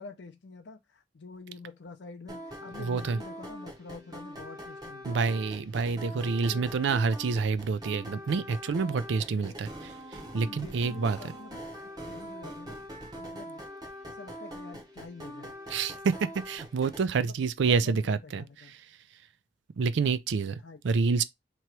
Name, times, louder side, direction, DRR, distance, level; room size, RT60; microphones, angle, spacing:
voice 1, 0.0-5.3 5.8-6.7 9.4-9.6 10.3-11.6 12.1-12.8 13.2-13.6 14.1-15.6 17.2-18.7 20.6-21.2, left 3 dB, 65° left, 0.5 m, -47 dB
sound 1, 2.3-17.0, equal, 20° right, 0.9 m, -43 dB
voice 2, 2.8-3.2 5.0-9.7 10.3-11.2 15.7-16.2 16.5-18.4 19.8-20.6 20.8-21.2, right 5 dB, 70° right, 0.4 m, -27 dB
3.0 x 2.9 x 4.5 m
head